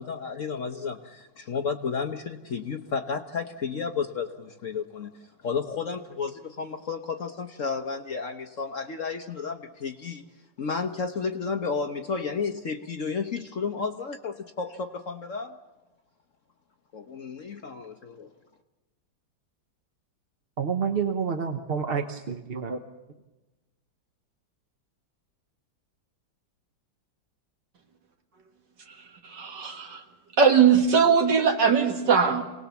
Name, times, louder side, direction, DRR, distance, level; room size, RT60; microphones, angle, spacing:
voice 1, 0.0-5.1 5.4-10.2 10.6-15.6 16.9-18.3, left 5 dB, 50° left, 6 dB, 1.1 m, -32 dB
voice 2, 20.6-22.8, right 6 dB, 40° right, 6 dB, 0.9 m, -28 dB
voice 3, 29.2-30.0 30.4-32.4, right 6 dB, 65° right, 4 dB, 2.4 m, -20 dB
27.5 x 19.0 x 7.1 m, 1.1 s
omnidirectional pair, 2.1 m